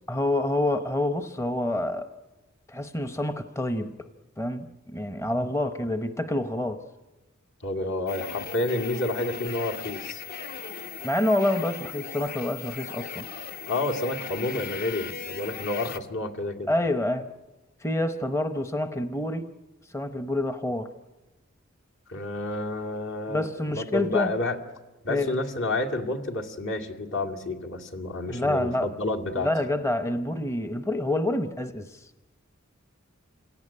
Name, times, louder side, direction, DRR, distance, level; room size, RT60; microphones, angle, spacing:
voice 1, 0.1-2.1 2.7-3.9 4.4-6.8 11.0-13.3 16.7-17.2 17.8-19.5 19.9-20.9 23.3-24.3 25.1-25.3 28.3-28.9 29.4-32.1, left 1 dB, 15° left, 8 dB, 0.8 m, -27 dB
voice 2, 7.6-10.2 13.7-16.7 22.1-24.6 25.0-29.5, left 2 dB, 65° left, 3 dB, 2.4 m, -30 dB
sound 1, 8.1-16.0, left 6 dB, 45° left, 1.0 m, -38 dB
27.5 x 17.5 x 9.9 m, 1.1 s
head